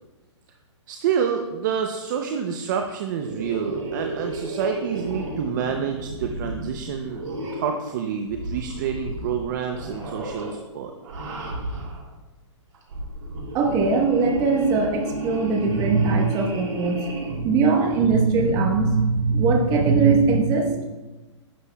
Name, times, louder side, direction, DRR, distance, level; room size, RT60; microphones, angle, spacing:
voice 1, 0.9-7.2 7.5-10.9, right 7 dB, 40° right, 5 dB, 0.6 m, -28 dB
sound 1, 3.2-7.8 8.3-9.4 9.7-10.5 11.0-12.0 12.7-17.4, right 1 dB, 85° right, 2.6 m, -33 dB
voice 2, 13.5-20.8, right 4 dB, 25° right, 1 dB, 1.1 m, -21 dB
11.0 x 8.0 x 2.3 m, 1.2 s
hypercardioid pair, 155°, 16 cm